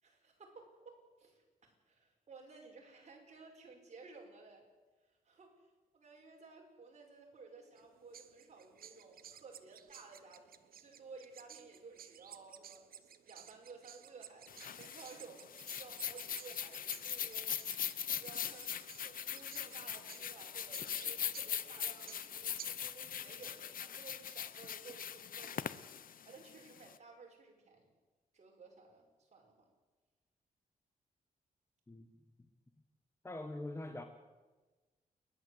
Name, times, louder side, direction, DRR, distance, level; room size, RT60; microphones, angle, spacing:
voice 1, 0.0-4.6 5.0-17.5 18.0-18.7 19.0-25.7 26.2-27.9 28.3-29.7, right 4 dB, 50° right, 0 dB, 5.8 m, -56 dB
sound 1, 7.8-22.9, right 9 dB, 75° right, 1.1 m, -56 dB
sound 2, 14.5-26.9, left 9 dB, 70° left, 0.9 m, -41 dB
voice 2, 33.2-34.0, left 1 dB, 15° left, 6 dB, 1.4 m, -43 dB
29.0 x 11.5 x 8.0 m, 1.2 s
cardioid pair, 110°, 15 cm